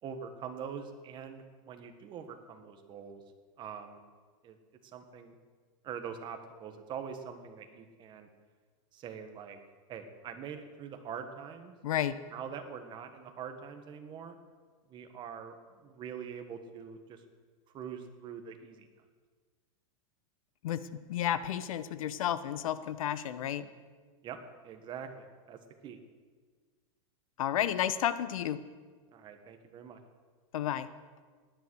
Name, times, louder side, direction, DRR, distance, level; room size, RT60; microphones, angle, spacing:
voice 1, 0.0-3.2 3.6-4.0 4.4-4.6 4.8-5.4 5.8-8.3 8.9-9.6 9.9-11.8 12.3-14.4 14.9-17.2 17.7-18.9 24.2-26.0 29.1-30.0, right 7 dB, 25° right, 6 dB, 1.6 m, -44 dB
voice 2, 11.8-12.2 20.6-20.8 21.1-23.7 27.4-28.6 30.5-30.9, left 11 dB, 80° left, 14 dB, 1.0 m, -31 dB
18.0 x 10.5 x 6.4 m, 1.5 s
supercardioid pair, 150°, 17 cm